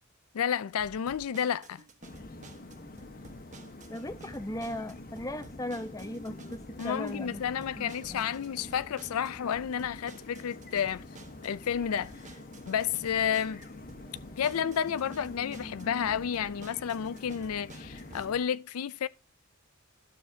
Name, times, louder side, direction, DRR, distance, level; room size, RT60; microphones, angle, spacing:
voice 1, 0.3-1.8 6.8-11.0 11.4-12.1 12.7-13.7 14.4-19.1, left 8 dB, 85° left, 0.4 m, -31 dB
sound 1, 0.8-18.2, right 2 dB, 35° right, 1.3 m, -52 dB
sound 2, 2.0-18.4, left 2 dB, 40° left, 1.3 m, -46 dB
voice 2, 3.9-7.4 7.8-8.3, left 1 dB, 15° left, 0.8 m, -38 dB
12.0 x 6.9 x 2.8 m
head